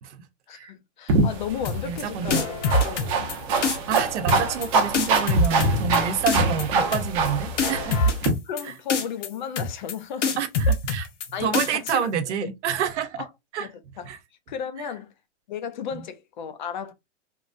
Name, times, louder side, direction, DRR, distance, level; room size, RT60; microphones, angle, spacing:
voice 1, 0.5-2.6 2.8-3.3 8.4-10.4 10.7-10.8 11.3-12.5 13.2-13.3 13.6-14.1 14.5-15.1 15.5-16.9, left 7 dB, 40° left, 0.4 m, -34 dB
sound 1, 1.1-8.3, right 3 dB, 30° right, 0.7 m, -25 dB
sound 2, 1.6-2.0 2.3-3.3 3.6-4.0 4.3-4.7 4.9-6.0 6.3-6.6 6.9-7.3 7.6-8.6 8.9-9.3 9.6-9.9 10.2-11.3 11.5-11.9, left 2 dB, 80° left, 1.0 m, -24 dB
voice 2, 1.8-2.3 3.6-8.1 10.4-11.1 11.4-13.2 13.5-13.7 14.0-14.2 15.9-16.0, right 7 dB, 70° right, 0.7 m, -28 dB
3.0 x 2.5 x 2.4 m
hypercardioid pair, 160°, 36 cm